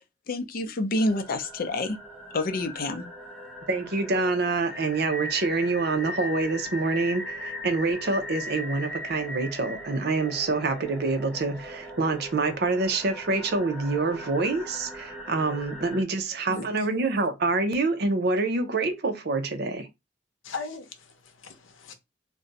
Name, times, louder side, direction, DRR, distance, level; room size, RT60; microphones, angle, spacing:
voice 1, 0.3-2.0 2.3-3.0, left 2 dB, 50° left, 0.5 m, -28 dB
sound 1, 1.0-16.0, equal, 5° left, 0.7 m, -39 dB
voice 2, 3.7-19.9, right 3 dB, 55° right, 0.6 m, -26 dB
voice 3, 20.4-21.9, left 4 dB, 90° left, 0.7 m, -38 dB
2.5 x 2.2 x 3.9 m
head